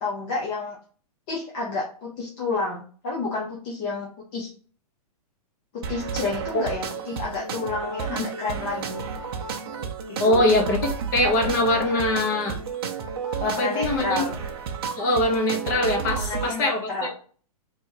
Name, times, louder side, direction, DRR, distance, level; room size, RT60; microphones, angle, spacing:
voice 1, 0.0-0.8 1.3-4.5 5.7-9.1 10.1-10.4 13.4-14.4 16.2-17.1, left 3 dB, 15° left, -3 dB, 0.3 m, -30 dB
sound 1, 5.8-16.5, right 6 dB, 40° right, 0.6 m, -32 dB
voice 2, 10.2-12.6 13.4-14.2 15.0-17.1, left 1 dB, 30° left, 2 dB, 0.9 m, -23 dB
3.4 x 2.6 x 4.6 m, 0.42 s
hypercardioid pair, 175°, 20 cm